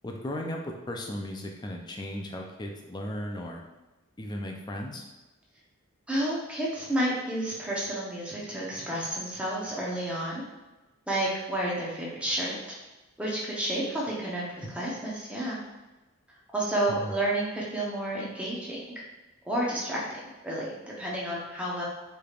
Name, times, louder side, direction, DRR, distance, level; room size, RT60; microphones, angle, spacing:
voice 1, 0.0-3.6 4.2-5.0 16.9-17.1, left 1 dB, 20° left, 1 dB, 0.4 m, -36 dB
voice 2, 6.1-10.4 11.1-12.6 13.2-15.6 16.5-18.8 19.4-20.0 20.4-21.8, right 1 dB, 5° right, -5 dB, 0.8 m, -30 dB
4.8 x 3.3 x 2.4 m, 1.1 s
head